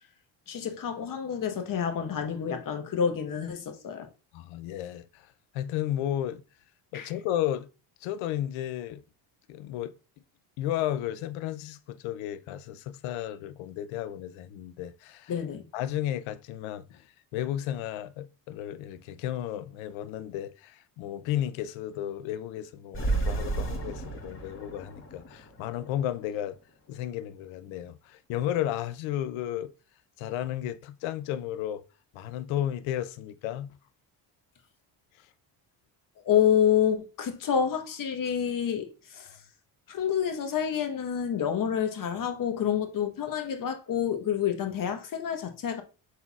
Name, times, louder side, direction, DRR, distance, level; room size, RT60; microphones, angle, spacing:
voice 1, 0.5-4.1 6.9-7.1 15.3-15.7 36.2-39.3 39.9-45.8, left 8 dB, 45° left, 1.1 m, -28 dB
voice 2, 4.3-5.3 5.5-6.4 6.9-7.7 8.0-9.0 9.5-9.9 10.6-15.3 15.7-17.0 17.3-26.6 26.9-29.7 30.2-31.8 32.1-33.7, left 11 dB, 80° left, 0.6 m, -33 dB
sound 1, 22.9-26.4, right 3 dB, 25° left, 1.5 m, -32 dB
5.7 x 3.9 x 2.3 m
supercardioid pair, 85°, 47 cm